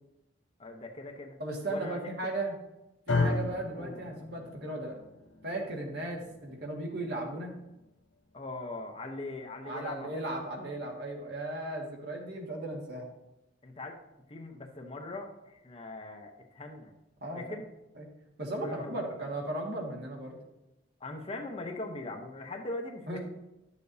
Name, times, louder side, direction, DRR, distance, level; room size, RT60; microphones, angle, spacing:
voice 1, 0.6-1.4 1.7-2.1 3.8-4.0 8.3-10.2 13.6-14.0 14.3-16.9 17.3-17.7 18.6-19.0 21.0-23.2, left 2 dB, 30° left, 3 dB, 0.8 m, -40 dB
voice 2, 1.4-2.6 3.1-4.9 5.4-7.5 9.6-13.1 17.2-17.6 17.9-18.1 18.4-20.4 23.1-23.2, right 2 dB, 55° right, 0 dB, 1.7 m, -36 dB
sound 1, 3.1-11.3, left 3 dB, 85° left, 0.8 m, -37 dB
11.5 x 6.7 x 2.7 m, 0.94 s
head